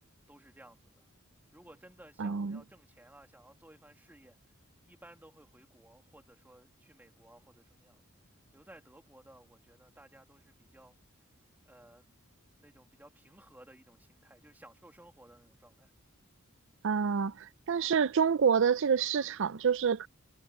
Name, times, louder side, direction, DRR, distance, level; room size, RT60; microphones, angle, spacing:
voice 1, 0.3-1.1 1.5-4.4 4.8-8.1 8.5-10.9 11.6-12.1 12.6-15.9, right 1 dB, 10° right, 2.3 m, -57 dB
voice 2, 2.2-2.6 16.8-20.1, right 6 dB, 60° right, 0.5 m, -27 dB
head